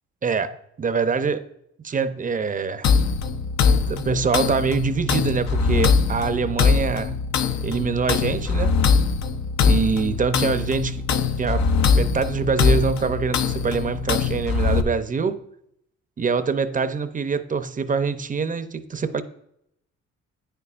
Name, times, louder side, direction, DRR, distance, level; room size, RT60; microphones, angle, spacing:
voice 1, 0.2-1.5 1.8-2.9 3.9-7.1 7.6-8.8 9.6-11.1 11.4-11.7 12.0-15.4 16.2-19.2, right 5 dB, 25° right, 0.6 m, -24 dB
sound 1, 2.8-14.8, left 5 dB, 65° left, 0.7 m, -22 dB
9.1 x 6.8 x 2.5 m
cardioid pair, 90°, 30 cm